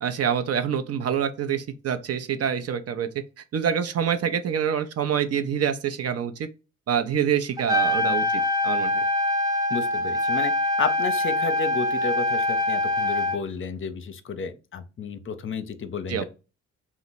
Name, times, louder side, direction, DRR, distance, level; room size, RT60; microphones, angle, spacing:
voice 1, 0.0-6.5 6.9-9.0 16.1-16.2, right 8 dB, 50° right, 0.6 m, -26 dB
Trumpet, 7.6-13.4, left 1 dB, 10° right, 0.7 m, -24 dB
voice 2, 9.7-10.5 10.8-16.2, left 5 dB, 40° left, 0.6 m, -31 dB
2.9 x 2.0 x 4.0 m
supercardioid pair, 50°, 31 cm